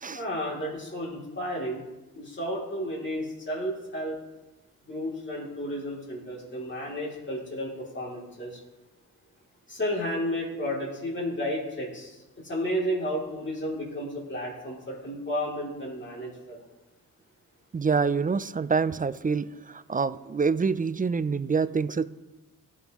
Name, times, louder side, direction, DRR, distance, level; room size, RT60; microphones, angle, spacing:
voice 1, 0.1-1.8 2.1-4.2 4.8-8.6 9.7-16.6, equal, 35° left, -4 dB, 2.9 m, -32 dB
voice 2, 17.7-22.1, right 5 dB, 25° right, 15 dB, 0.3 m, -26 dB
15.0 x 6.1 x 3.0 m, 1.0 s
cardioid pair, 75°, 35 cm